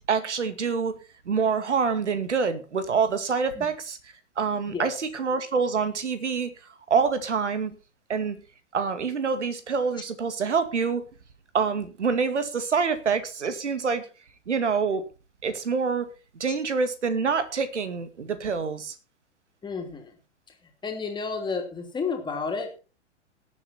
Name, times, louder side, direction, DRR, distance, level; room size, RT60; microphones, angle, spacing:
voice 1, 0.1-0.9 1.3-4.0 4.4-6.5 6.9-7.7 8.1-8.4 8.7-11.0 11.5-14.1 14.5-15.0 15.4-16.1 16.4-19.0, right 5 dB, 70° right, 12 dB, 2.2 m, -26 dB
voice 2, 19.6-20.2 20.8-22.8, left 5 dB, 10° left, 4 dB, 3.1 m, -31 dB
18.5 x 7.7 x 4.3 m, 0.33 s
figure-of-eight pair, 110°, 36 cm